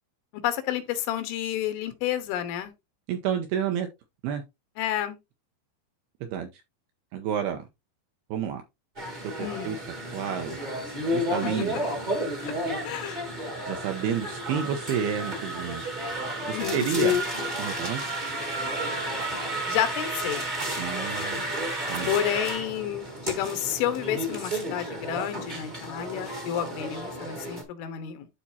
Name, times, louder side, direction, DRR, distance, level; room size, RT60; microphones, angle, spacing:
voice 1, 0.4-2.7 4.8-5.2 9.4-9.8 11.4-11.5 12.4-12.5 12.9-13.2 16.4-17.3 19.7-20.5 22.1-28.3, left 11 dB, 90° left, 3.7 m, -30 dB
voice 2, 3.1-3.9 4.2-4.4 6.2-6.5 7.1-7.6 8.3-8.6 9.1-9.8 10.1-10.6 11.1-11.8 13.7-15.8 16.5-17.2 17.6-18.0 20.8-21.5 21.9-22.1, right 8 dB, 80° right, 2.3 m, -30 dB
sound 1, 8.9-27.6, right 1 dB, 45° right, 0.6 m, -32 dB
Fire, 15.2-15.4 17.3-18.7 19.2-19.7 20.5-20.7 21.1-21.2 21.9-22.5 23.0-23.1, right 4 dB, 65° right, 1.1 m, -44 dB
12.0 x 4.2 x 2.8 m
omnidirectional pair, 5.4 m